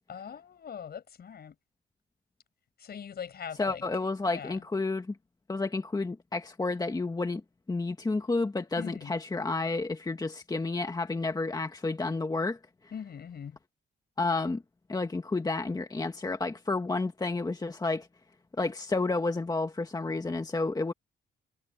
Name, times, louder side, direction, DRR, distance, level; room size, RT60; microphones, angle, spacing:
voice 1, 0.1-1.6 2.8-3.8 4.3-4.6 8.8-9.2 12.9-13.6, left 7 dB, 55° left, 5.7 m, -41 dB
voice 2, 3.6-5.2 5.5-7.4 7.7-12.6 14.2-14.6 14.9-18.1 18.6-20.9, left 3 dB, 20° left, 1.7 m, -30 dB
cardioid pair, 90°, 20 cm